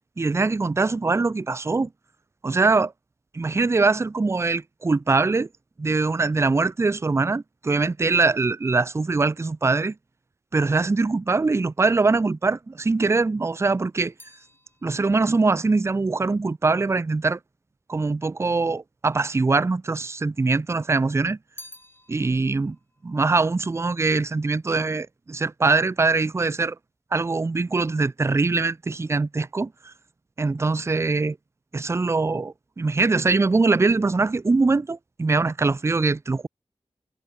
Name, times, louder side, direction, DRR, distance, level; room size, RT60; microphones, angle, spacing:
voice 1, 0.2-1.9 2.4-2.9 3.3-5.5 5.8-9.9 10.5-14.1 14.8-17.4 17.9-21.4 22.1-22.8 23.0-26.8 27.1-29.9 30.4-31.4 31.7-36.5, right 3 dB, 25° right, 0.3 m, -22 dB
sound 1, 13.2-17.6 18.4-19.2 19.5-20.6 21.0-24.5 24.8-25.3, left 1 dB, 20° left, 5.5 m, -52 dB
cardioid pair, 45°, 12 cm